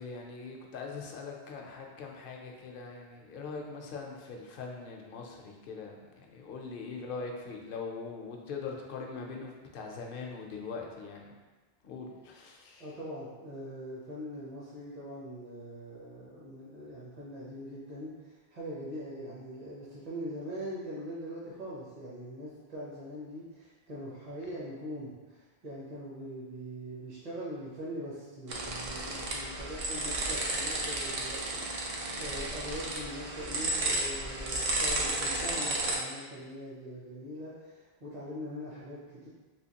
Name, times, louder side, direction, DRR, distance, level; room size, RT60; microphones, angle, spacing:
voice 1, 0.0-11.3 11.8-12.9, left 4 dB, 65° left, 1 dB, 0.7 m, -42 dB
voice 2, 12.8-39.3, equal, 40° right, -8 dB, 0.7 m, -42 dB
sound 1, 28.5-36.0, right 2 dB, 70° right, 0.8 m, -33 dB
3.4 x 2.7 x 2.8 m, 1.3 s
omnidirectional pair, 1.0 m